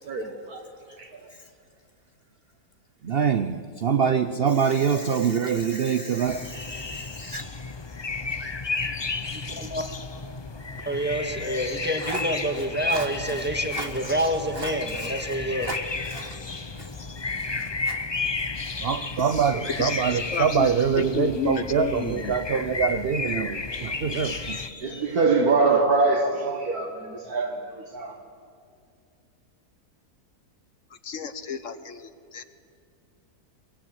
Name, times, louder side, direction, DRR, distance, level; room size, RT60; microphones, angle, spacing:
voice 1, 0.1-0.6 1.0-1.3 24.8-28.2, right 3 dB, 70° right, 2.1 m, -24 dB
voice 2, 3.0-7.5 12.0-12.2 12.9-13.4 13.7-14.1 14.6-15.1 15.6-15.8 16.1-16.4 16.7-16.9 17.4-18.0 18.4-18.5 18.8-25.2, right 6 dB, 50° right, 0.8 m, -26 dB
sound 1, 6.3-24.7, left 3 dB, 25° left, 0.5 m, -33 dB
voice 3, 9.3-9.8 10.9-15.7, equal, 5° right, 1.8 m, -28 dB
voice 4, 19.8-20.7 21.0-22.3 30.9-32.4, left 6 dB, 55° left, 1.5 m, -32 dB
23.0 x 22.5 x 8.8 m
omnidirectional pair, 1.7 m